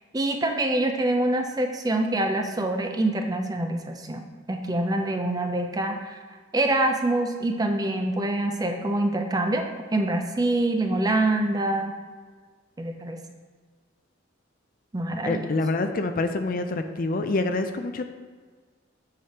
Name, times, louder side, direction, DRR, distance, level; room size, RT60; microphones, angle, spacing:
voice 1, 0.1-6.2 6.5-9.7 9.9-11.9 12.8-13.2 14.9-15.5, right 1 dB, 20° right, 4 dB, 0.5 m, -25 dB
voice 2, 15.2-18.1, left 2 dB, 45° left, 8 dB, 0.4 m, -26 dB
8.4 x 5.0 x 2.9 m, 1.5 s
head